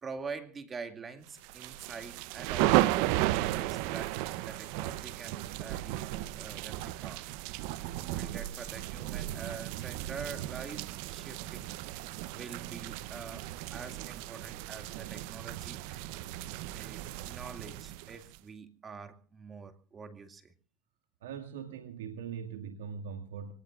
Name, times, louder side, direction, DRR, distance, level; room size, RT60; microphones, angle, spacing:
voice 1, 0.0-4.2 4.4-6.0 6.3-7.3 8.1-11.7 12.3-13.4 13.7-15.8 16.7-20.5, right 5 dB, 20° right, 7 dB, 2.3 m, -45 dB
sound 1, 1.4-18.4, right 15 dB, 60° right, 0.8 m, -34 dB
voice 2, 21.2-23.5, right 7 dB, 85° right, 3 dB, 2.1 m, -41 dB
25.5 x 19.5 x 2.5 m, 0.41 s
supercardioid pair, 115°, 0 cm